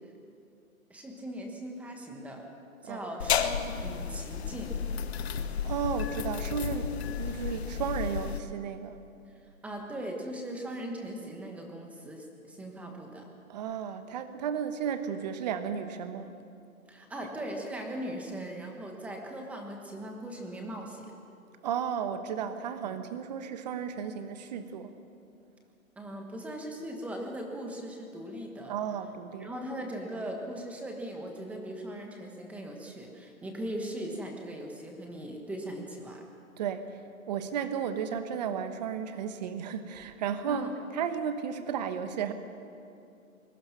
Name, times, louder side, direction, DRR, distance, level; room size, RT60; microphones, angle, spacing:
voice 1, 0.9-2.4 2.8-4.8 9.6-13.3 16.9-21.1 22.8-23.0 26.0-28.7 29.4-36.2 40.5-40.7, right 1 dB, 5° right, 2 dB, 1.3 m, -39 dB
sound 1, 3.2-8.4, left 7 dB, 45° left, 1.4 m, -32 dB
voice 2, 5.6-9.0 13.5-16.3 21.6-24.9 28.7-29.5 36.6-36.8 37.3-42.3, right 7 dB, 30° right, 9 dB, 1.3 m, -34 dB
24.5 x 21.5 x 5.9 m, 2.6 s
hypercardioid pair, 160°, 43 cm